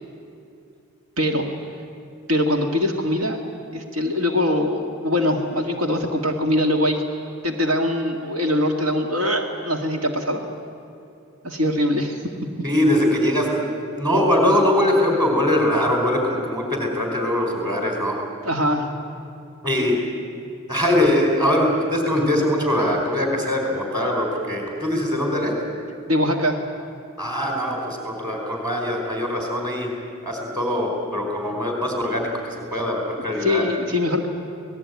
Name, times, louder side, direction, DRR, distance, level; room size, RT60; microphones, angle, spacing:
voice 1, 1.2-1.5 2.3-3.4 3.7-7.0 7.4-10.4 11.4-12.2 18.4-18.9 19.8-19.9 26.1-26.6 33.4-34.3, left 1 dB, 75° right, 3 dB, 1.9 m, -22 dB
voice 2, 12.6-13.5 14.0-18.2 19.6-20.0 20.7-25.5 27.2-29.9 30.2-33.6, left 1 dB, 20° right, 1 dB, 4.7 m, -22 dB
26.0 x 19.0 x 9.5 m, 2.6 s
head